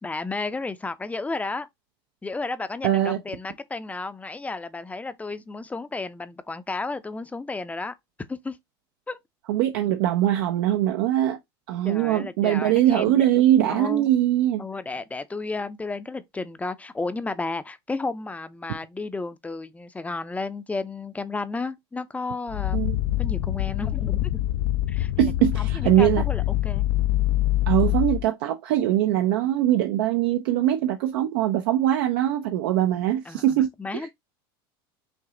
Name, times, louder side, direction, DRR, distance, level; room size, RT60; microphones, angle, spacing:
voice 1, 0.0-1.7 2.2-7.9 8.3-8.6 9.1-9.2 11.8-14.1 14.6-22.9 23.2-24.4 24.9-26.9 33.3-34.1, left 3 dB, 10° left, 0.5 m, -33 dB
voice 2, 2.8-3.2 9.5-11.4 11.7-14.6 22.7-23.0 25.2-26.2 27.7-34.1, right 12 dB, 75° right, 0.6 m, -22 dB
sound 1, 22.5-28.3, left 15 dB, 70° left, 0.4 m, -25 dB
5.9 x 2.0 x 3.7 m
supercardioid pair, 110°, 13 cm